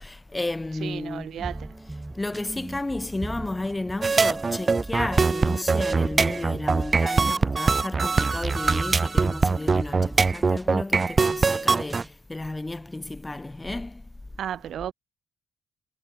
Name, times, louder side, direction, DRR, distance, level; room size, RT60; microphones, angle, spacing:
voice 1, 0.0-1.5 2.1-14.0, left 2 dB, 15° left, 4.9 m, -33 dB
voice 2, 0.8-1.7 14.4-14.9, right 10 dB, 65° right, 5.2 m, -33 dB
sound 1, 1.4-12.1, right 2 dB, 15° right, 7.6 m, -39 dB
sound 2, 4.0-12.0, right 4 dB, 30° right, 1.3 m, -22 dB
cardioid pair, 90°, 0 cm